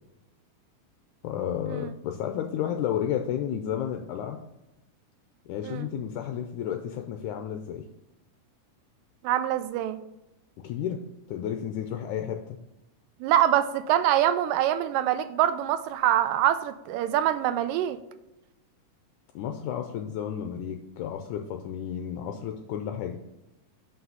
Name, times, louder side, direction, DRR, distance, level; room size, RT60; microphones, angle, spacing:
voice 1, 1.2-4.4 5.5-7.9 10.6-11.0 11.3-12.4 19.4-23.2, left 9 dB, 80° left, 5 dB, 1.9 m, -32 dB
voice 2, 9.2-10.0 13.2-18.0, right 11 dB, 85° right, 11 dB, 2.2 m, -24 dB
5.8 x 5.6 x 5.5 m, 0.95 s
omnidirectional pair, 3.9 m